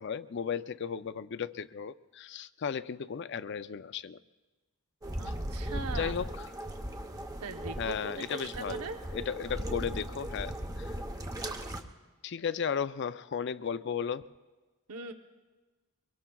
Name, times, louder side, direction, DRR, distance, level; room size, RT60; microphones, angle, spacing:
voice 1, 0.0-4.2 5.7-6.3 7.8-8.8 9.1-11.0 12.2-14.2, left 7 dB, 50° left, 14 dB, 0.4 m, -35 dB
sound 1, 5.0-11.8, right 1 dB, 15° right, 0.8 m, -38 dB
voice 2, 5.2-6.1 7.4-9.0 14.9-15.1, right 4 dB, 90° right, 6 dB, 0.9 m, -40 dB
23.5 x 23.5 x 2.3 m, 1.3 s
head